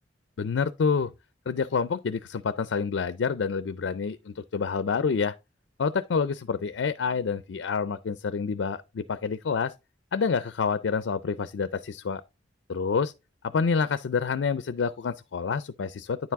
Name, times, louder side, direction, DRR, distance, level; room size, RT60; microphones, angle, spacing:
voice 1, 0.4-1.1 1.5-5.3 5.8-9.7 10.1-12.2 12.7-13.1 13.5-16.2, left 5 dB, 80° left, 0.4 m, -28 dB
9.6 x 4.7 x 3.5 m
head